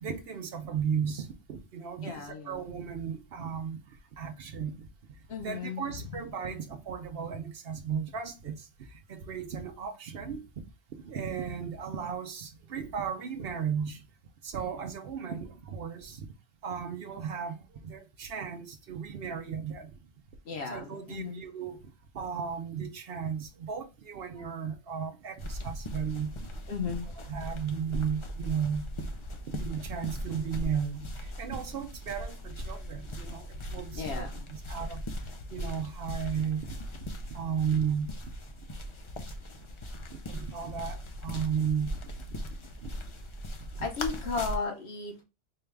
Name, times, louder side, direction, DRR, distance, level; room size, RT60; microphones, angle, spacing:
voice 1, 0.0-3.8 4.2-4.7 5.4-8.7 9.1-10.5 11.0-14.0 14.4-16.3 16.6-17.6 17.8-19.9 20.6-21.8 22.1-26.5 27.3-28.9 29.5-35.0 35.5-36.6 37.3-38.1 40.3-42.0 42.8-42.9, right 7 dB, 60° right, 0.8 m, -35 dB
voice 2, 2.0-2.6 5.3-6.1 20.4-21.4 26.7-27.1 33.9-34.5 43.8-45.2, left 5 dB, 65° left, 1.2 m, -35 dB
sound 1, 25.4-44.6, equal, 45° left, 0.4 m, -39 dB
4.5 x 2.3 x 3.2 m
omnidirectional pair, 1.2 m